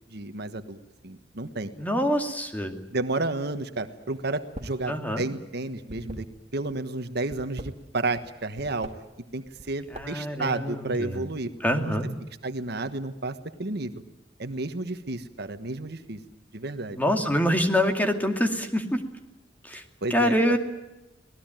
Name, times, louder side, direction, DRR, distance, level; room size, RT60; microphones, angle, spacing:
voice 1, 0.1-0.8 1.0-1.7 2.9-6.3 6.5-8.9 9.3-11.5 11.8-11.9 12.4-13.9 14.4-16.2 16.5-17.0 20.0-20.6, right 2 dB, 60° right, 9 dB, 1.4 m, -31 dB
voice 2, 1.8-2.8 4.9-5.3 9.9-11.2 11.6-12.1 16.9-19.0 19.6-19.8 20.1-20.6, equal, 10° left, 5 dB, 2.4 m, -25 dB
sound 1, 4.4-4.9 5.1-6.7 7.2-8.3 8.6-8.9 9.5-10.3, right 1 dB, 35° right, 2.0 m, -41 dB
25.5 x 19.0 x 9.1 m, 0.96 s
head